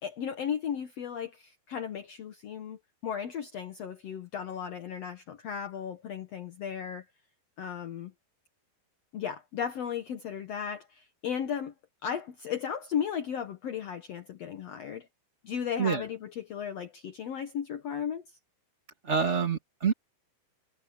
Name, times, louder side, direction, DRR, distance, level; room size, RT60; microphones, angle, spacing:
voice 1, 0.0-7.0 7.6-8.1 9.1-11.7 12.0-15.1 15.4-18.2, left 8 dB, 75° left, 1.5 m, -35 dB
voice 2, 19.0-19.9, right 6 dB, 55° right, 0.7 m, -27 dB
omnidirectional pair, 4.7 m